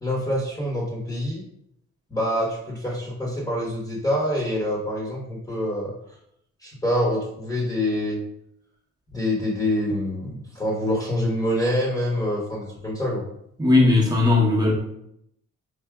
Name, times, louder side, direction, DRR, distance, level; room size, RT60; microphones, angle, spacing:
voice 1, 0.0-1.4 2.1-5.9 6.6-8.2 9.1-13.2, left 1 dB, 10° left, -4 dB, 1.0 m, -26 dB
voice 2, 13.6-14.7, left 2 dB, 15° right, -3 dB, 0.9 m, -17 dB
4.7 x 2.6 x 2.3 m, 0.74 s
cardioid pair, 90°, 30 cm